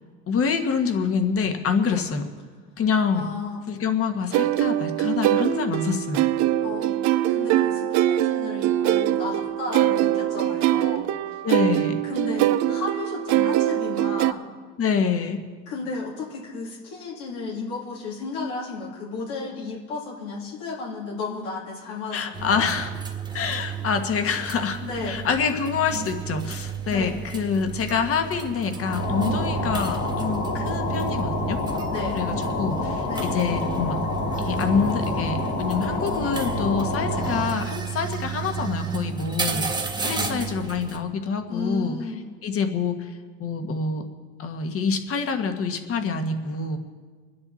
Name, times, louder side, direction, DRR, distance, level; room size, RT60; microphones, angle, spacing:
voice 1, 0.3-2.2 2.8-3.3 3.7-6.3 11.4-12.0 14.8-15.4 22.1-22.9 23.3-24.8 25.1-31.6 32.1-34.0 34.4-41.9 42.4-43.1 43.4-44.0 44.4-46.8, left 5 dB, 45° left, 7 dB, 1.6 m, -26 dB
voice 2, 3.1-3.6 6.6-11.1 12.0-14.5 15.7-22.7 24.8-25.3 26.9-27.2 31.9-32.2 33.1-33.4 40.0-40.5 41.5-42.2, left 3 dB, 85° left, -4 dB, 3.2 m, -33 dB
sound 1, 4.3-14.3, right 13 dB, 60° right, 0.6 m, -23 dB
sound 2, 22.3-41.0, right 6 dB, 15° right, 1.6 m, -32 dB
sound 3, 28.8-37.6, left 3 dB, 65° left, 5.1 m, -28 dB
26.0 x 10.5 x 4.3 m, 1.5 s
supercardioid pair, 105°, 32 cm